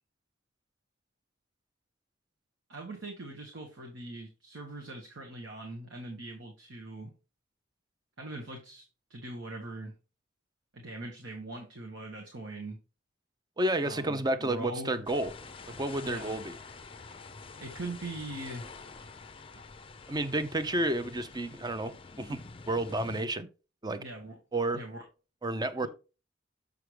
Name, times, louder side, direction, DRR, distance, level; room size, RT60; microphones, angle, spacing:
voice 1, 2.7-7.1 8.2-8.8 9.1-9.9 10.7-12.8 13.8-15.0 16.0-16.4 17.6-18.7 24.0-24.4 24.7-25.0 25.8-25.9, right 2 dB, 75° right, 1.4 m, -41 dB
voice 2, 13.6-15.3 15.8-16.5 20.1-23.5 23.8-24.0 24.5-24.8 25.4-25.9, right 1 dB, 20° right, 0.6 m, -31 dB
sound 1, 15.1-23.2, left 4 dB, 30° left, 0.5 m, -47 dB
Wind instrument woodwind instrument, 15.4-20.2, equal, 55° right, 2.7 m, -59 dB
6.9 x 6.3 x 3.3 m
head